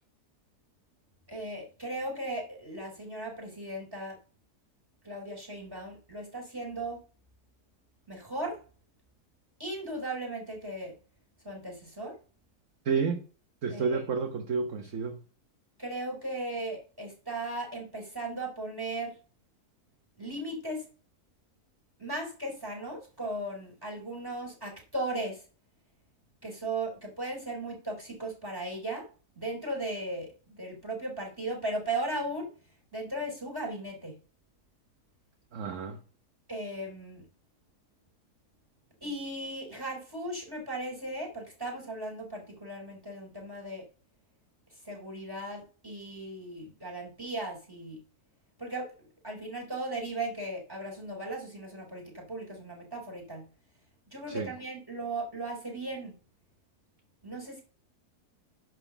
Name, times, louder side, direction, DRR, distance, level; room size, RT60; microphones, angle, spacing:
voice 1, 1.3-4.2 5.0-7.0 8.1-8.6 9.6-10.9 11.4-12.2 13.7-14.0 15.8-19.1 20.2-20.9 22.0-25.4 26.4-29.1 29.4-30.3 30.6-32.5 32.9-34.2 36.5-37.2 39.0-43.9 44.9-48.0 48.6-48.9 49.2-53.4 54.1-56.2 57.2-57.6, right 1 dB, 15° right, 3.9 m, -37 dB
voice 2, 12.8-13.2 13.6-15.2 35.5-36.0 54.3-54.5, right 5 dB, 55° right, 1.2 m, -30 dB
10.5 x 4.0 x 7.0 m
omnidirectional pair, 1.7 m